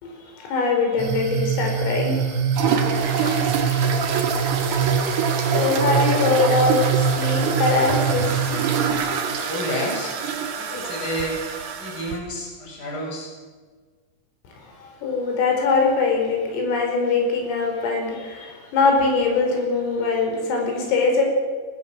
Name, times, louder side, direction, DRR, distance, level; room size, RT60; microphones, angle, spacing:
voice 1, 0.0-2.4 4.9-9.0 14.5-21.2, left 4 dB, 80° left, 1 dB, 7.6 m, -23 dB
sound 1, 1.0-8.9, right 7 dB, 75° right, 5.9 m, -24 dB
sound 2, 2.5-12.2, right 6 dB, 50° right, 3.0 m, -25 dB
voice 2, 3.1-4.0 9.5-10.1 10.5-11.4 11.8-13.3, equal, 20° left, 0 dB, 6.8 m, -31 dB
24.0 x 20.0 x 7.9 m, 1.5 s
omnidirectional pair, 5.9 m